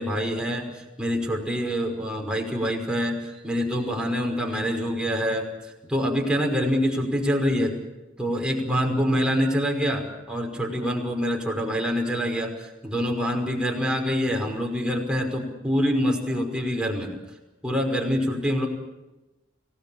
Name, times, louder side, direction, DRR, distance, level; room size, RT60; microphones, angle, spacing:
voice 1, 0.0-3.2 3.4-5.4 5.8-7.7 8.2-17.1 17.6-18.7, equal, 5° right, 0 dB, 5.6 m, -25 dB
30.0 x 18.5 x 7.3 m, 1.0 s
head